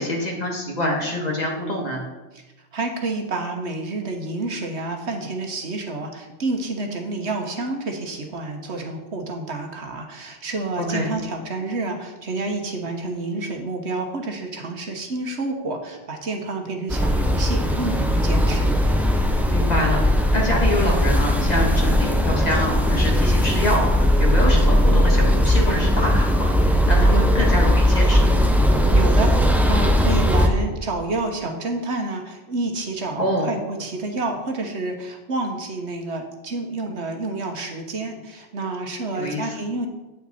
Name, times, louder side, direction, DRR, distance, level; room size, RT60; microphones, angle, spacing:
voice 1, 0.0-2.0 10.8-11.1 19.5-26.5 26.9-28.4 33.2-33.5 39.2-39.5, left 1 dB, 35° left, -1 dB, 1.9 m, -25 dB
voice 2, 2.7-18.8 27.1-27.3 28.7-39.9, right 2 dB, 65° right, 3 dB, 1.3 m, -29 dB
sound 1, 16.9-30.5, equal, ahead, 0.7 m, -18 dB
8.8 x 8.7 x 4.2 m, 1.1 s
omnidirectional pair, 1.3 m